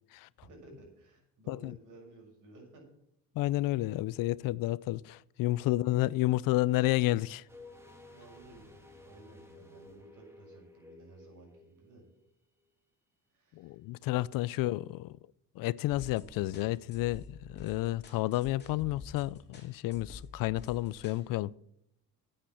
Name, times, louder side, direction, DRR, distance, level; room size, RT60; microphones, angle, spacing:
voice 1, 0.4-2.8 8.1-12.0 13.3-13.8, right 2 dB, 60° right, 6.5 m, -55 dB
voice 2, 3.4-7.4 13.6-15.1 15.6-21.5, left 17 dB, 70° left, 0.5 m, -31 dB
sound 1, 7.5-12.3 12.6-12.7, left 2 dB, 5° right, 2.1 m, -54 dB
sound 2, 15.9-21.3, left 3 dB, 30° left, 2.9 m, -50 dB
10.0 x 8.8 x 7.7 m
cardioid pair, 130°, 35 cm